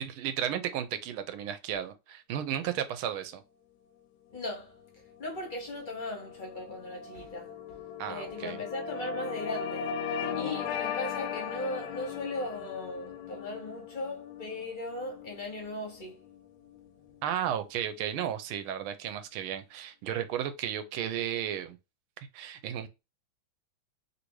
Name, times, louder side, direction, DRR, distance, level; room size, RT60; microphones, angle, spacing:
voice 1, 0.0-3.4 8.0-8.6 17.2-21.8 22.3-22.9, right 10 dB, 90° right, 1.4 m, -34 dB
voice 2, 4.3-4.7 5.2-7.8 8.1-9.9 10.3-16.2, left 2 dB, 45° left, 0.6 m, -38 dB
sound 1, 4.5-17.1, left 7 dB, 70° left, 1.0 m, -38 dB
3.3 x 2.6 x 2.9 m
omnidirectional pair, 2.3 m